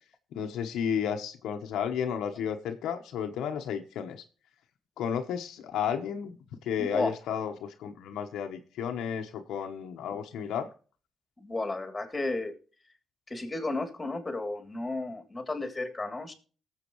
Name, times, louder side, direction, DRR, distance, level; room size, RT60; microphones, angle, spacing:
voice 1, 0.3-4.2 5.0-6.4 6.6-10.7, left 8 dB, 80° left, 5 dB, 1.0 m, -32 dB
voice 2, 6.8-7.2 11.4-12.5 13.3-16.3, left 2 dB, 15° left, 4 dB, 3.0 m, -33 dB
18.5 x 7.5 x 3.1 m, 0.39 s
cardioid pair, 90°, 0 cm